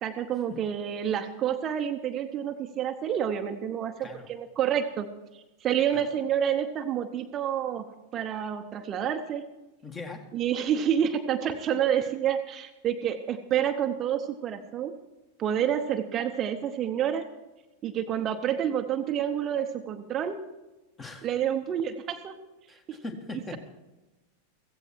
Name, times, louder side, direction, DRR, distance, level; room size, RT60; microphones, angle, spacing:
voice 1, 0.0-5.1 5.3-9.4 10.3-14.9 15.4-17.3 17.8-20.4 21.2-22.4 22.9-23.0, right 9 dB, 30° right, 7 dB, 0.9 m, -28 dB
voice 2, 9.8-10.3 21.0-21.3 22.7-23.6, left 3 dB, 20° left, 5 dB, 2.0 m, -40 dB
15.5 x 15.5 x 4.6 m, 1.1 s
figure-of-eight pair, 90°, 0 cm